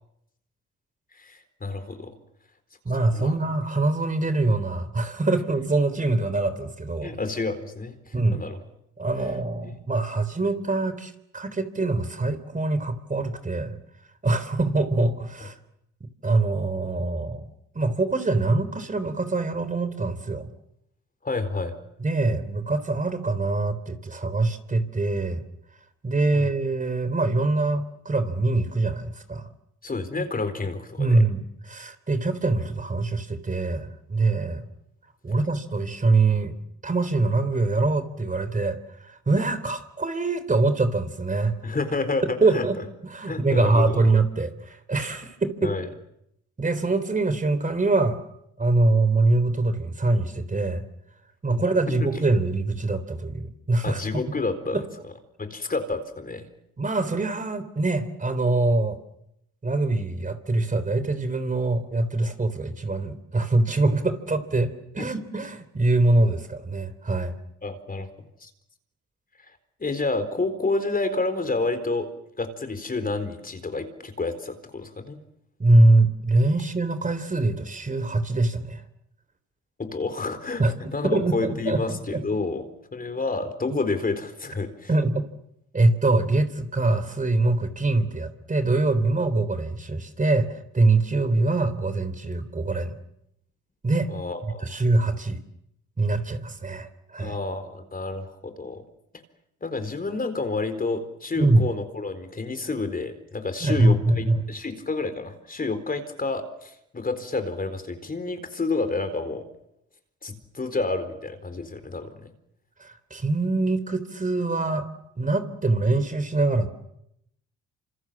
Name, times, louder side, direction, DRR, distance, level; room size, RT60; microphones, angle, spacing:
voice 1, 1.1-2.1 3.1-3.4 7.0-8.6 21.2-21.8 26.3-26.5 29.8-31.2 41.6-42.7 43.3-44.0 45.6-45.9 51.5-52.1 53.8-54.8 55.4-56.5 65.0-65.1 67.6-68.1 68.4-68.5 69.8-72.1 72.4-75.2 79.8-82.6 82.9-84.9 94.1-94.8 97.2-98.8 99.6-109.5 110.2-112.3, left 3 dB, 30° left, 9 dB, 4.2 m, -29 dB
voice 2, 2.9-7.1 8.1-8.4 9.0-13.8 14.2-15.5 16.2-17.5 17.7-20.5 22.0-25.4 26.0-29.5 30.2-30.3 31.0-34.6 35.2-36.5 36.8-41.8 42.4-42.8 43.1-45.7 46.6-48.2 48.6-50.8 51.4-54.0 54.7-54.8 56.8-59.0 59.6-67.4 75.6-78.8 80.6-80.7 81.0-82.0 84.9-85.2 85.7-92.9 93.8-94.1 94.6-95.4 96.0-97.3 101.4-101.7 103.6-104.4 112.8-114.9 115.2-116.7, right 2 dB, 25° right, 11 dB, 3.7 m, -24 dB
28.5 x 27.0 x 7.6 m, 0.79 s
cardioid pair, 90°, 30 cm